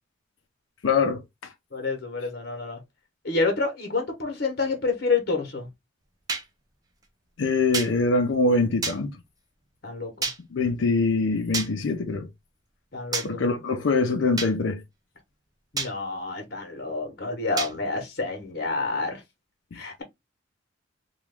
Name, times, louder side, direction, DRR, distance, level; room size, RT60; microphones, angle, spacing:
voice 1, 0.8-1.5 7.4-9.1 10.5-12.3 13.2-14.8 19.7-19.8, left 3 dB, 75° left, 0.5 m, -24 dB
voice 2, 1.7-2.8 3.2-5.7 9.8-10.3 12.9-13.6 15.7-19.2 19.7-20.0, left 3 dB, 55° left, 0.9 m, -28 dB
sound 1, 6.3-6.4 7.7-7.9 8.8-9.0 10.2-10.4 11.5-11.7 13.1-13.3 14.4-14.5 15.8-15.9 17.6-17.7, right 4 dB, 20° right, 0.5 m, -28 dB
3.0 x 2.3 x 3.4 m
head